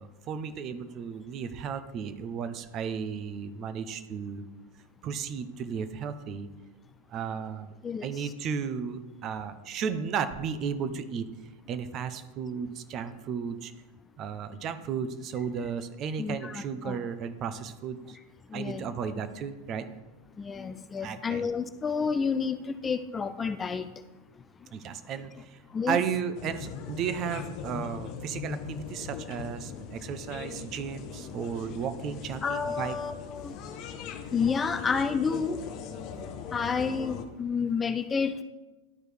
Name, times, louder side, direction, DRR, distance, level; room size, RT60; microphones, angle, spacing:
voice 1, 0.0-4.4 5.0-6.5 7.1-7.7 8.0-11.2 11.7-13.7 14.2-18.2 18.5-19.9 21.0-21.4 24.7-25.6 25.9-32.9, right 7 dB, 40° right, 11 dB, 0.6 m, -34 dB
voice 2, 7.8-8.3 16.2-17.0 18.5-18.9 20.4-23.9 25.7-26.0 32.4-33.6 34.3-35.6 36.5-38.4, left 5 dB, 20° left, 11 dB, 0.4 m, -30 dB
sound 1, 26.3-37.2, left 6 dB, 45° left, 0.8 m, -40 dB
12.0 x 4.5 x 3.4 m, 1.1 s
hypercardioid pair, 115°, 0 cm